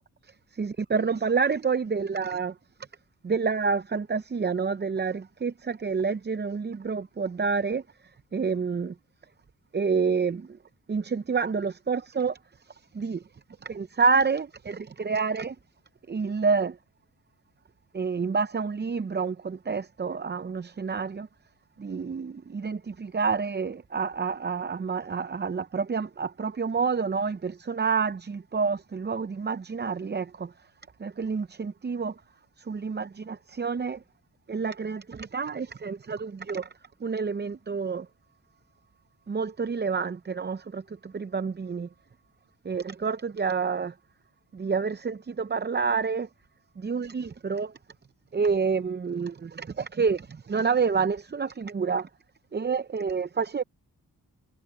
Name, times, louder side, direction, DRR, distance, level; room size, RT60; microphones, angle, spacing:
voice 1, 0.6-2.5 3.2-7.8 8.3-8.9 9.7-10.6 10.9-12.4 12.9-13.2 13.6-15.6 16.1-16.8 17.9-21.3 21.8-30.5 31.0-32.1 32.7-34.0 34.5-36.7 37.0-38.1 39.3-41.9 42.6-43.9 44.5-46.3 46.8-47.7 48.3-52.1 52.5-53.6, right 5 dB, 30° right, 0.6 m, -28 dB
cardioid pair, 65°, 36 cm